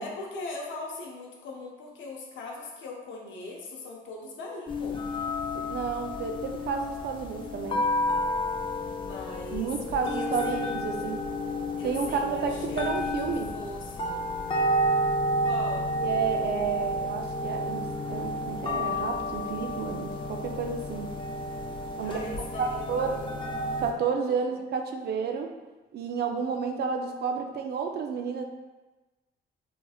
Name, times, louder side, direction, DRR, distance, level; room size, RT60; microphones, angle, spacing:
voice 1, 0.0-5.0 8.9-9.7 10.0-10.6 11.8-14.1 15.4-15.9 22.0-23.3 24.2-24.5, left 2 dB, 75° left, -1 dB, 0.6 m, -40 dB
sound 1, 4.7-23.9, equal, 25° left, 0.4 m, -31 dB
voice 2, 5.5-7.8 9.5-11.2 11.8-13.5 16.0-21.1 22.0-22.2 22.6-23.2 23.8-25.5 25.9-28.4, right 6 dB, 55° right, 4 dB, 0.4 m, -31 dB
2.9 x 2.8 x 2.3 m, 1.2 s
cardioid pair, 90°, 20 cm